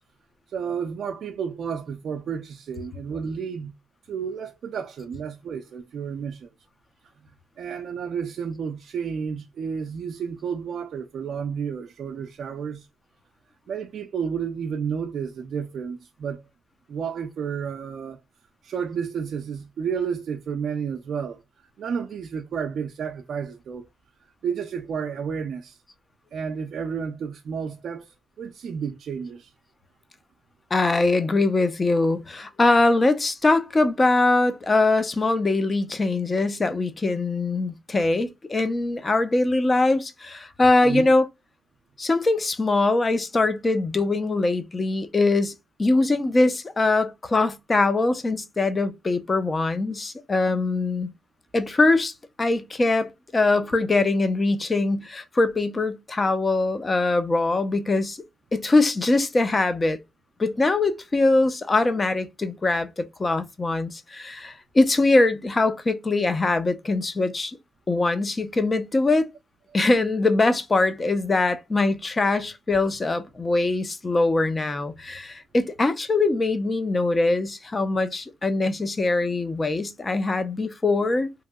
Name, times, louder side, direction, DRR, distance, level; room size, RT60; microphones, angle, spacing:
voice 1, 0.5-3.7 4.1-6.5 7.6-12.9 13.7-16.4 16.9-18.2 18.6-21.4 21.8-23.9 24.4-25.8 26.3-28.1 28.4-29.5 40.8-41.1, right 6 dB, 60° right, 0.4 m, -31 dB
voice 2, 30.7-41.3 42.0-51.1 51.5-52.1 52.4-58.2 58.5-60.0 60.4-67.6 67.9-69.3 69.7-81.3, left 2 dB, 25° left, 0.5 m, -22 dB
2.9 x 2.7 x 2.2 m
cardioid pair, 90°, 0 cm